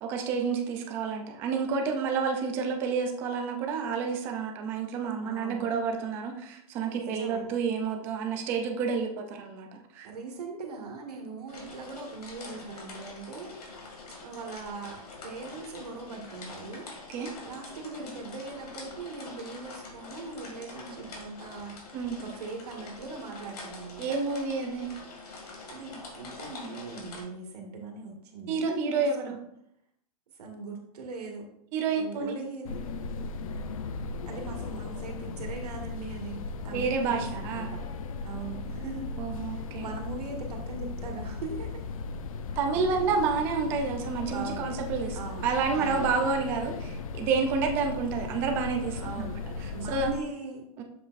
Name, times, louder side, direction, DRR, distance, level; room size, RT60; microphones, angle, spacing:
voice 1, 0.0-9.7 9.9-10.1 17.1-17.3 21.9-22.2 24.0-25.0 28.5-29.4 31.7-32.4 36.7-37.8 39.2-39.9 42.6-49.3 49.6-50.3 50.8-50.9, right 5 dB, 10° right, 4 dB, 0.3 m, -29 dB
voice 2, 5.2-5.6 6.9-7.5 10.0-13.5 14.2-16.9 17.4-21.8 22.2-24.0 25.7-29.3 30.4-31.5 32.0-33.0 34.3-37.8 38.2-39.2 39.5-41.8 42.9-43.1 44.3-44.8 45.1-45.5 45.7-46.3 49.0-49.4 49.7-50.6, right 4 dB, 90° right, 1 dB, 1.7 m, -40 dB
sound 1, 11.5-27.2, left 3 dB, 85° left, 2.1 m, -45 dB
sound 2, 32.6-50.2, left 4 dB, 60° left, 0.6 m, -37 dB
7.2 x 6.3 x 2.5 m, 0.75 s
supercardioid pair, 175°, 20 cm